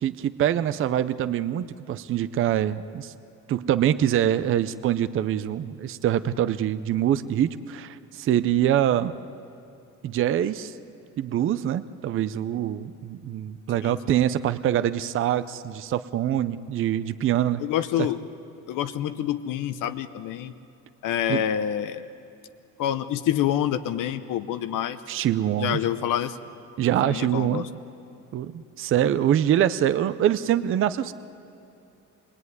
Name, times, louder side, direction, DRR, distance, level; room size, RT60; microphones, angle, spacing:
voice 1, 0.0-3.1 3.5-9.1 10.0-10.7 11.2-17.6 18.0-18.1 21.3-21.4 25.1-25.8 26.8-27.7 28.3-31.1, right 11 dB, 40° right, 13 dB, 0.5 m, -24 dB
voice 2, 17.6-18.2 18.7-20.5 21.0-22.0 22.8-25.0 25.6-26.4 27.0-27.7, left 10 dB, 70° left, 10 dB, 0.8 m, -27 dB
26.0 x 21.5 x 9.6 m, 2.6 s
cardioid pair, 180°, 33 cm